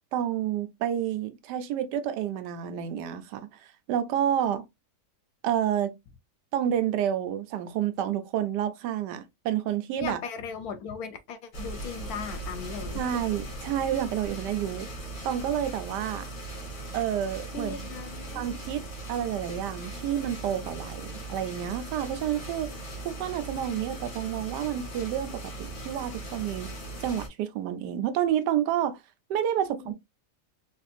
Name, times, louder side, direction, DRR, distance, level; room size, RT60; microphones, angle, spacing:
voice 1, 0.1-3.6 3.9-4.6 5.4-5.9 6.5-10.2 12.9-14.9 15.2-16.3 16.9-17.8 18.3-18.8 19.1-22.7 23.0-26.7 27.0-29.0 29.3-29.9, right 10 dB, 85° right, 1.2 m, -29 dB
voice 2, 10.0-13.2 17.5-18.4 29.8-29.9, left 6 dB, 70° left, 1.1 m, -38 dB
sound 1, 11.5-27.3, right 2 dB, 90° left, 1.9 m, -39 dB
4.2 x 2.6 x 2.3 m
omnidirectional pair, 1.8 m